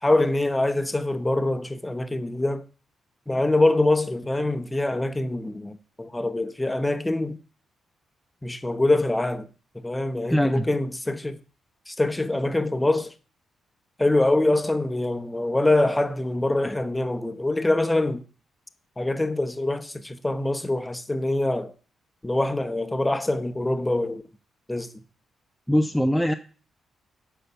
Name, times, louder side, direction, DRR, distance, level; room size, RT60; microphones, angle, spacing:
voice 1, 0.0-2.6 3.3-7.4 8.4-9.5 9.7-11.4 11.9-13.1 14.0-18.2 19.0-21.7 22.2-24.2 24.7-25.0, left 2 dB, 15° left, 1.0 m, -24 dB
voice 2, 10.3-10.7 25.7-26.3, equal, ahead, 0.6 m, -21 dB
7.8 x 5.6 x 7.1 m
hypercardioid pair, 45°, 0 cm